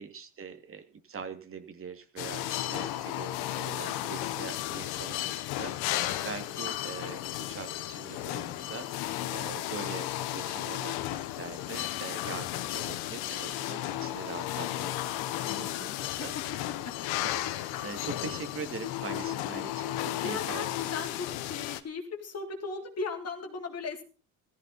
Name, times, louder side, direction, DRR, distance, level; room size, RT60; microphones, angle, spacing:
voice 1, 0.0-15.9 16.2-16.3 17.0-20.7, right 5 dB, 35° right, 7 dB, 2.4 m, -43 dB
sound 1, 2.2-21.8, left 14 dB, 80° left, 1.3 m, -34 dB
voice 2, 15.5-16.4 20.2-24.0, left 4 dB, 40° left, 4 dB, 3.5 m, -38 dB
15.0 x 14.5 x 4.2 m, 0.35 s
cardioid pair, 105°, 37 cm